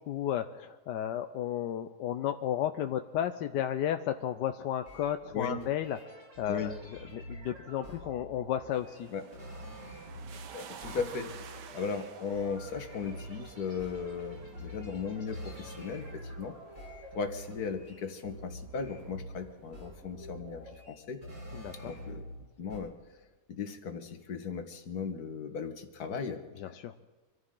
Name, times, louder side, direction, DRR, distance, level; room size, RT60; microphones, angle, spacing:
voice 1, 0.1-6.8 7.1-9.1 21.5-21.9 26.6-26.9, left 10 dB, 85° left, 8 dB, 1.3 m, -33 dB
sound 1, 4.8-10.5 10.8-16.5 16.7-19.4 19.7-22.4 22.7-22.8, equal, 60° right, 7.7 m, -47 dB
sound 2, 5.8-18.3 18.7-18.9 19.4-20.7, equal, 45° right, 7.4 m, -53 dB
sound 3, 8.7-17.8 19.1-19.2, right 7 dB, 80° right, 1.6 m, -52 dB
voice 2, 10.5-11.3 11.7-16.6 17.1-21.2 21.9-22.2 22.6-22.9 23.5-26.4, left 5 dB, 65° left, 7 dB, 1.9 m, -37 dB
25.0 x 14.5 x 3.8 m, 1.3 s
omnidirectional pair, 1.8 m